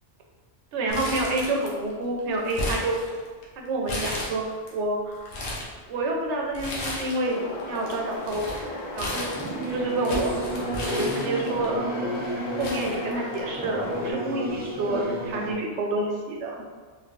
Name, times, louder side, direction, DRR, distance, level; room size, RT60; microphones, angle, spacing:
voice 1, 0.7-3.0 3.6-4.4 4.7-5.3 5.9-8.7 8.9-9.3 9.7-10.4 10.9-11.8 12.6-16.6, right 2 dB, 90° right, 0 dB, 0.9 m, -28 dB
Crumpling crinkling, 0.9-1.9 2.2-3.4 3.9-4.7 5.1-5.7 6.5-7.3 7.6-11.7 12.2-12.3 12.6-13.6 14.0-14.1 15.0-15.3, left 1 dB, 80° left, 1.1 m, -34 dB
sound 1, 7.2-14.1, left 1 dB, 55° left, 0.5 m, -36 dB
Singing / Musical instrument, 9.3-15.5, right 1 dB, 15° right, 0.4 m, -32 dB
3.4 x 3.3 x 2.5 m, 1.5 s
omnidirectional pair, 1.1 m